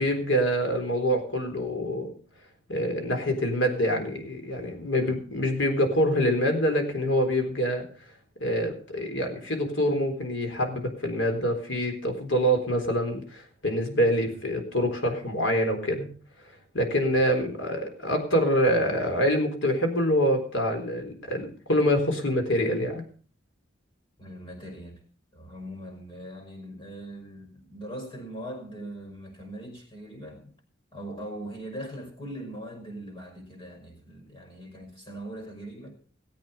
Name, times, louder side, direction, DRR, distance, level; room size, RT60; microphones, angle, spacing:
voice 1, 0.0-2.1 2.7-7.8 8.4-16.1 16.7-23.0, equal, 80° left, 4.0 m, -25 dB
voice 2, 24.2-25.0 25.3-30.5 30.9-36.0, right 1 dB, 30° left, 5.7 m, -41 dB
18.5 x 8.6 x 5.5 m
head